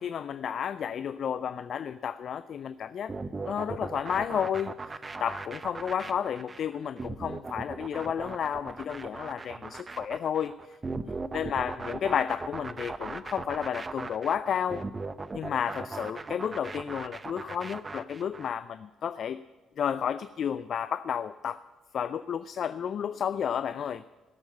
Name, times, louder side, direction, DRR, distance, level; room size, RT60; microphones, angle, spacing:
voice 1, 0.0-3.1 3.5-4.9 5.2-10.8 11.3-14.8 15.3-19.4 19.8-21.6 21.9-24.0, left 8 dB, 50° left, 14 dB, 0.4 m, -32 dB
sound 1, 3.1-18.5, right 3 dB, 30° right, 0.7 m, -38 dB
18.0 x 7.2 x 8.3 m, 1.2 s
figure-of-eight pair, 45°, 0 cm